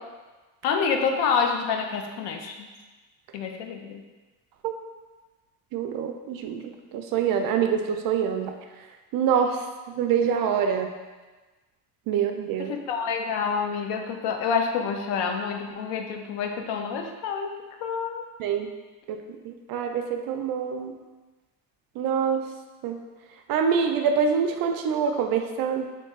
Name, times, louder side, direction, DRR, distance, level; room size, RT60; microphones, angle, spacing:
voice 1, 0.6-2.7 3.3-4.0 12.6-18.2, left 6 dB, 80° left, 4 dB, 0.6 m, -28 dB
voice 2, 5.7-6.6 6.9-8.5 9.1-9.6 9.9-10.9 12.1-12.7 18.4-18.7 19.1-19.2 19.5-20.9 22.0-22.4 22.8-23.0 23.5-25.9, right 7 dB, 60° right, 4 dB, 0.5 m, -25 dB
3.0 x 2.6 x 3.6 m, 1.2 s
cardioid pair, 130°, 41 cm